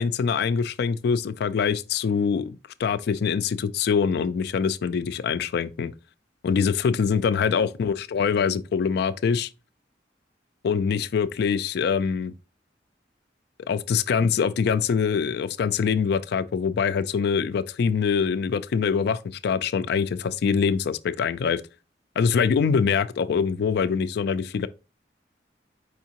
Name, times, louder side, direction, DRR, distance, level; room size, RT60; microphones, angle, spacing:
voice 1, 0.0-5.9 6.4-9.5 10.6-12.3 13.7-21.6 22.2-24.7, left 6 dB, 65° left, 0.3 m, -24 dB
4.9 x 3.6 x 2.9 m
head